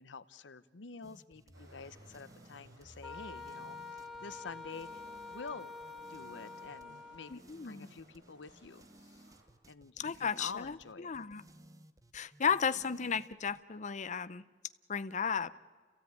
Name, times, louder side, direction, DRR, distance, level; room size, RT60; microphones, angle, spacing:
voice 1, 0.0-5.7 6.1-9.2 9.7-11.1, left 5 dB, 75° left, 15 dB, 0.8 m, -48 dB
sound 1, 1.0-13.6, right 1 dB, 20° right, 0.8 m, -59 dB
sound 2, 1.5-9.5, equal, 75° right, 6.4 m, -62 dB
Wind instrument woodwind instrument, 3.0-7.4, left 4 dB, ahead, 1.6 m, -47 dB
voice 2, 7.3-7.9 10.0-11.4 12.1-14.4 14.9-15.5, left 6 dB, 40° left, 14 dB, 0.7 m, -34 dB
29.5 x 16.0 x 9.4 m, 1.5 s
head